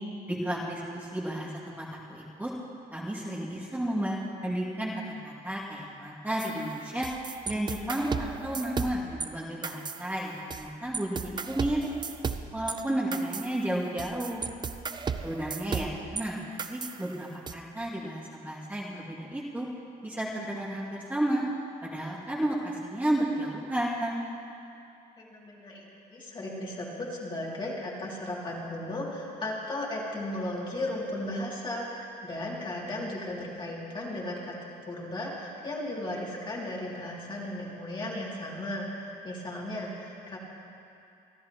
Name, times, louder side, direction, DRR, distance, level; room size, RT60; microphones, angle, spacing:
voice 1, 0.3-2.5 2.9-4.9 5.2-7.1 7.5-11.8 12.5-14.4 15.2-19.7 20.0-21.4 21.8-24.2, right 1 dB, 10° right, -6 dB, 2.3 m, -32 dB
sound 1, 6.4-9.3 9.6-10.7 10.9-16.2 16.6-17.5, right 5 dB, 25° right, 0.5 m, -35 dB
voice 2, 25.2-40.4, left 1 dB, 30° left, -4 dB, 2.7 m, -36 dB
27.0 x 11.0 x 3.0 m, 2.7 s
cardioid pair, 110°, 17 cm